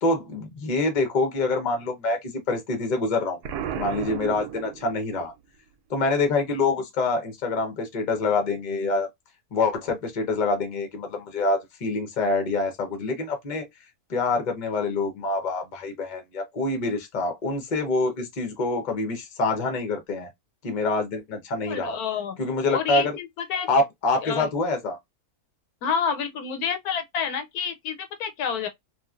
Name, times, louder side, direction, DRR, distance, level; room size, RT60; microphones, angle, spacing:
voice 1, 0.0-3.4 3.7-5.3 5.9-9.1 9.5-13.7 14.1-20.3 20.6-22.0 22.4-23.1 23.7-25.0, left 3 dB, 40° left, 0.7 m, -26 dB
Explosion, 3.4-5.3, right 9 dB, 85° right, 1.1 m, -33 dB
voice 2, 21.7-22.4 22.7-23.7 24.2-24.5 25.8-28.7, left 7 dB, 80° left, 1.1 m, -28 dB
3.1 x 2.4 x 2.4 m
omnidirectional pair, 1.6 m